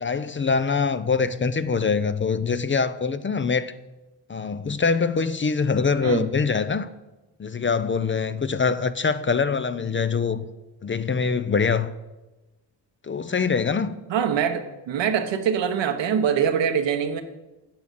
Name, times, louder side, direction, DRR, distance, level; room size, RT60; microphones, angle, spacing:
voice 1, 0.0-3.7 4.3-6.9 7.4-10.4 10.8-11.9 13.0-13.9, left 5 dB, 30° left, 0.5 m, -24 dB
voice 2, 14.1-17.2, right 7 dB, 80° right, 1.2 m, -24 dB
8.8 x 7.1 x 7.5 m
cardioid pair, 90°, 43 cm